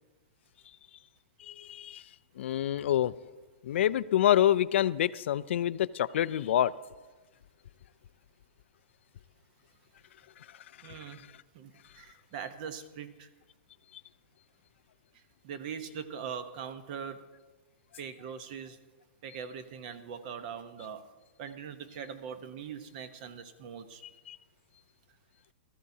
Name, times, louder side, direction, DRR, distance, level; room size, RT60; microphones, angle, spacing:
voice 1, 1.4-2.0 2.4-3.1 3.6-6.7 24.3-24.4, left 11 dB, 65° left, 17 dB, 0.4 m, -27 dB
voice 2, 10.8-11.2 11.5-13.3 15.1-17.3 18.0-18.8 19.2-21.1 21.4-24.0, right 7 dB, 40° right, 11 dB, 0.9 m, -42 dB
18.5 x 13.5 x 2.7 m, 1.2 s
hypercardioid pair, 160°, 7 cm